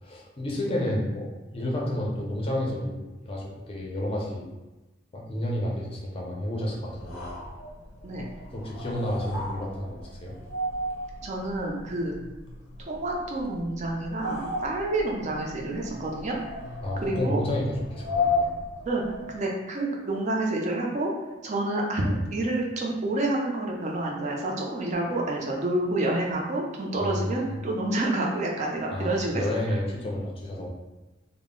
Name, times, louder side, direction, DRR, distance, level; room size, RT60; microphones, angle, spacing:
voice 1, 0.0-4.4 5.1-7.4 8.5-10.3 16.8-18.5 27.0-27.6 28.9-30.7, left 1 dB, 30° left, -2 dB, 0.5 m, -31 dB
sound 1, 6.9-19.5, left 2 dB, 90° left, 0.6 m, -35 dB
voice 2, 11.2-12.1 12.9-16.4 17.0-17.4 18.9-19.0 19.3-21.1 21.4-29.8, right 2 dB, 40° right, -1 dB, 0.5 m, -28 dB
2.0 x 2.0 x 3.6 m, 1.1 s
head